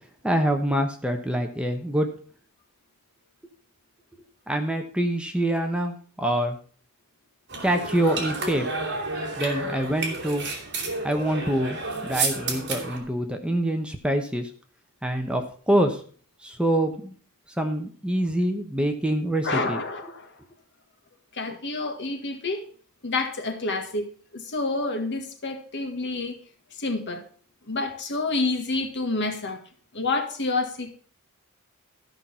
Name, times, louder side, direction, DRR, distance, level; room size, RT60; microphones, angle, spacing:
voice 1, 0.2-2.1 4.5-6.6 7.6-8.7 9.4-10.5 11.0-14.5 15.0-16.0 16.4-17.1 17.6-19.8, right 1 dB, 5° right, 5 dB, 1.0 m, -25 dB
sound 1, 7.5-13.0, right 3 dB, 55° right, 2.6 m, -30 dB
voice 2, 19.4-20.3 21.3-22.6 23.0-24.1 24.3-26.4 26.8-27.2 27.7-29.6 29.9-30.9, left 3 dB, 55° left, 6 dB, 1.7 m, -28 dB
13.5 x 6.0 x 5.6 m, 0.43 s
head